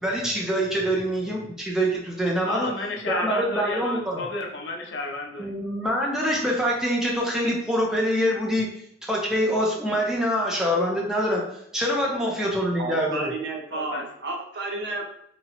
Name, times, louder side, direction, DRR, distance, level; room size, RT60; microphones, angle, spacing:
voice 1, 0.0-2.7 3.1-4.2 5.4-8.7 9.0-13.3, equal, 5° right, -3 dB, 0.6 m, -25 dB
voice 2, 2.4-5.5 12.0-12.3 13.7-14.0, left 2 dB, 65° left, 1 dB, 0.5 m, -32 dB
voice 3, 12.8-15.1, right 2 dB, 60° right, 1 dB, 0.6 m, -32 dB
2.8 x 2.2 x 2.8 m, 0.73 s
head